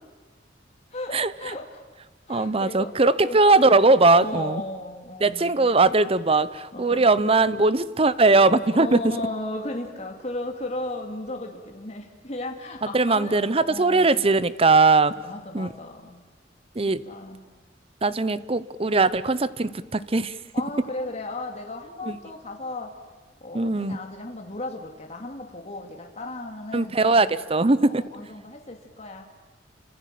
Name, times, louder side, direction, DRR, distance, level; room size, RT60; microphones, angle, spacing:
voice 1, 0.9-1.8 2.3-3.0 3.2-3.8 4.1-5.7 6.7-7.1 8.7-13.4 13.7-14.3 15.2-16.2 17.0-17.4 20.5-23.0 23.4-27.4 27.8-29.2, left 2 dB, 35° left, 2 dB, 2.5 m, -35 dB
voice 2, 2.3-4.6 5.2-9.0 12.9-15.1 15.5-15.7 16.8-17.0 18.0-20.3 22.1-22.2 23.5-24.0 26.7-28.0, right 3 dB, 30° right, 16 dB, 0.8 m, -20 dB
30.0 x 25.5 x 7.7 m, 1.3 s
head